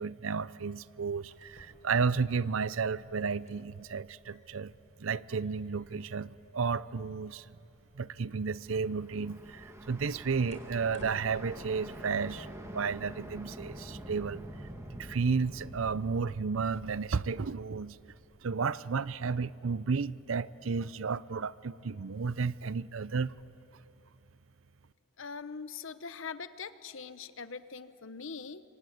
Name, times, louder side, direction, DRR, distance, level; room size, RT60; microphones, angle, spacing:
voice 1, 0.0-4.7 5.0-7.5 7.9-14.5 14.9-18.0 18.4-23.3, right 5 dB, 70° right, 0.6 m, -32 dB
sound 1, 1.2-11.3, left 1 dB, 35° left, 3.6 m, -60 dB
sound 2, 8.3-18.3, equal, 15° right, 2.0 m, -47 dB
voice 2, 25.2-28.6, left 5 dB, 65° left, 0.9 m, -42 dB
27.0 x 24.0 x 9.3 m
head